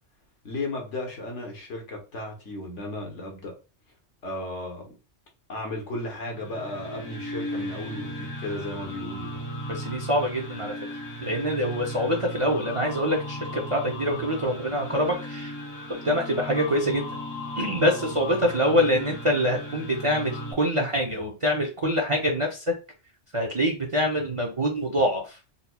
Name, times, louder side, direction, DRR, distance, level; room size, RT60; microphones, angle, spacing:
voice 1, 0.4-3.5 4.2-5.0 5.5-9.5, left 2 dB, 75° left, 1.4 m, -35 dB
sound 1, 6.3-20.5, equal, 55° left, 1.3 m, -36 dB
voice 2, 9.7-10.7 11.2-15.5 16.0-17.1 17.6-22.7 23.3-25.4, equal, 40° right, 0.5 m, -25 dB
4.1 x 2.8 x 2.2 m
omnidirectional pair, 1.2 m